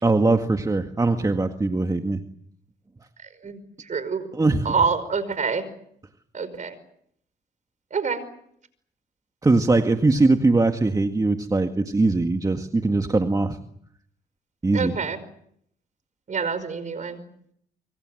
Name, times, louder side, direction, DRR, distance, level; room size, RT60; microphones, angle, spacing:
voice 1, 0.0-2.2 4.3-4.7 9.4-13.6 14.6-15.0, right 3 dB, 20° right, 6 dB, 1.9 m, -21 dB
voice 2, 3.9-4.2 4.7-5.7 6.3-6.7 7.9-8.2 14.7-15.2 16.3-17.2, right 5 dB, 40° right, 14 dB, 5.3 m, -26 dB
25.5 x 24.5 x 7.9 m, 0.70 s
supercardioid pair, 80°, 19 cm